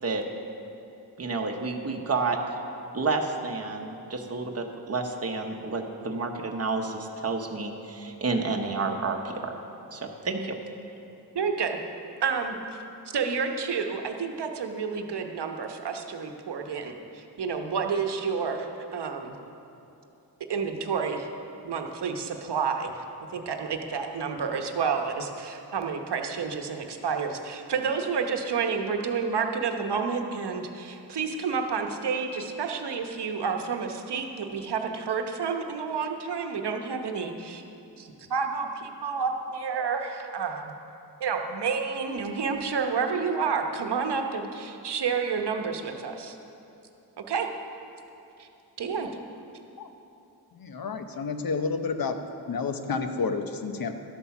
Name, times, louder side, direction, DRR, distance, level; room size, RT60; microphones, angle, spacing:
voice 1, 1.2-2.4 2.9-9.5 9.9-10.6, right 3 dB, 35° right, 3 dB, 0.9 m, -30 dB
voice 2, 11.3-11.8 12.2-12.6 13.1-19.3 20.5-21.3 21.6-23.1 23.3-37.6 38.0-40.7 41.2-46.4 47.3-47.5 48.4-48.5 48.8-49.1, right 5 dB, 80° right, 4 dB, 1.0 m, -30 dB
voice 3, 50.5-52.2 52.5-53.9, left 4 dB, 60° left, 7 dB, 0.8 m, -30 dB
12.5 x 8.3 x 5.9 m, 2.8 s
wide cardioid pair, 130°, 40 cm